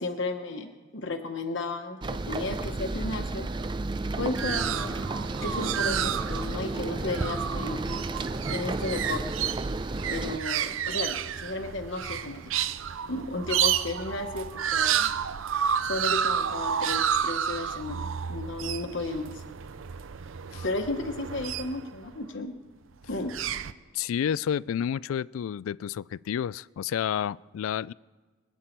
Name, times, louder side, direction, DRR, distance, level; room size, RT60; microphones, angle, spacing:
voice 1, 0.0-3.5 4.0-5.1 5.4-7.8 8.5-9.3 10.1-12.4 13.1-15.1 15.5-19.4 20.6-22.5 23.1-23.3, left 2 dB, 65° left, 3 dB, 1.1 m, -34 dB
sound 1, 2.0-10.4, right 2 dB, 20° right, 0.4 m, -32 dB
sound 2, 4.0-22.1 23.0-23.7, right 8 dB, 75° right, 0.5 m, -31 dB
voice 2, 23.9-27.9, left 8 dB, 80° left, 22 dB, 0.3 m, -30 dB
24.0 x 8.4 x 4.5 m, 1.4 s
head